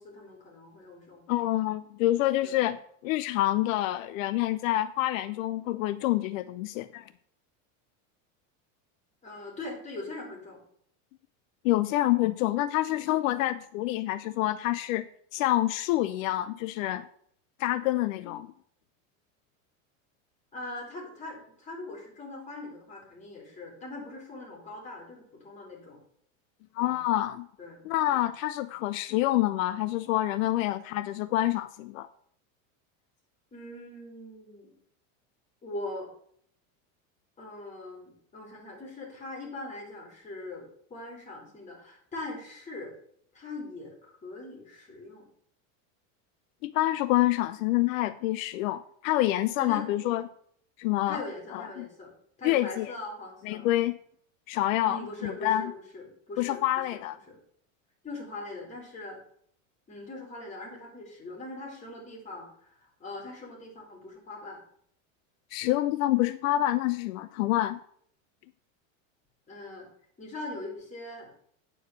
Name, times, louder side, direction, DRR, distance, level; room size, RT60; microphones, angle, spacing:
voice 1, 0.0-1.5 2.4-2.6 9.2-10.6 20.5-26.0 26.8-27.0 27.6-28.2 33.5-34.7 35.6-36.1 37.4-40.6 40.9-42.9 43.3-45.3 49.6-49.8 51.1-52.1 52.4-53.7 54.8-56.6 56.9-57.0 57.3-57.4 58.0-59.2 59.9-64.6 69.5-69.9 70.2-71.3, left 2 dB, 20° left, -2 dB, 3.3 m, -41 dB
voice 2, 1.3-2.8 3.0-7.0 11.6-15.1 15.3-17.1 17.6-18.5 26.7-27.5 27.9-32.1 46.6-50.2 50.8-51.2 51.5-51.9 52.4-52.9 53.4-54.0 54.5-55.7 56.4-57.2 65.5-67.8, left 15 dB, 80° left, 13 dB, 0.6 m, -27 dB
9.4 x 4.7 x 6.6 m, 0.64 s
supercardioid pair, 155°, 40 cm